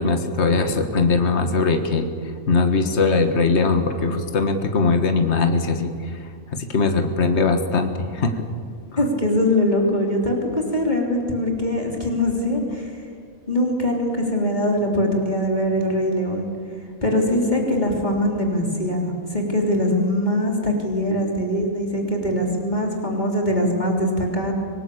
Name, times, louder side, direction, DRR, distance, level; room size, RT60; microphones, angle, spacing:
voice 1, 0.0-2.1 2.5-6.1 6.5-8.5 8.9-9.0, left 4 dB, 55° left, 6 dB, 1.8 m, -20 dB
voice 2, 9.0-12.9 13.5-16.5 17.0-24.5, left 1 dB, 30° left, 0 dB, 3.7 m, -22 dB
25.0 x 19.5 x 8.5 m, 2.2 s
omnidirectional pair, 1.4 m